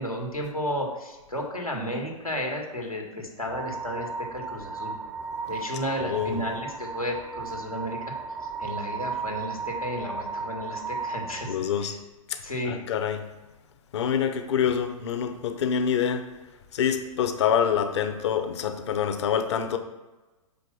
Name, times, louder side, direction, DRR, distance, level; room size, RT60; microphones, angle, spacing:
voice 1, 0.0-4.9 5.5-8.0 8.6-12.0 12.4-12.7, equal, 90° left, 0 dB, 1.9 m, -33 dB
sound 1, 3.5-11.5, right 4 dB, 5° right, 0.4 m, -35 dB
voice 2, 6.0-6.4 11.5-12.0 12.3-13.2 13.9-16.2 16.7-19.8, left 8 dB, 50° left, 8 dB, 0.9 m, -26 dB
6.3 x 5.1 x 6.0 m, 1.1 s
figure-of-eight pair, 105°, 18 cm